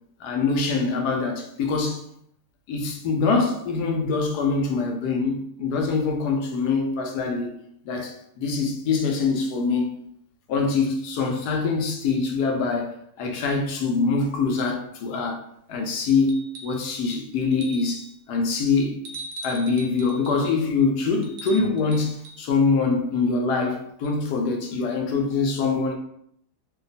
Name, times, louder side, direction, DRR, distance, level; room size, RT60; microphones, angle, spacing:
voice 1, 0.2-2.0 2.7-7.6 7.8-9.9 10.5-15.4 15.7-16.3 16.6-19.0 19.4-25.9, left 4 dB, 75° left, 1.2 m, -24 dB
sound 1, 16.3-16.9 17.5-18.1 19.0-20.4 21.2-22.4 24.0-24.1, right 1 dB, 65° right, 0.8 m, -40 dB
2.9 x 2.2 x 4.0 m
omnidirectional pair, 1.7 m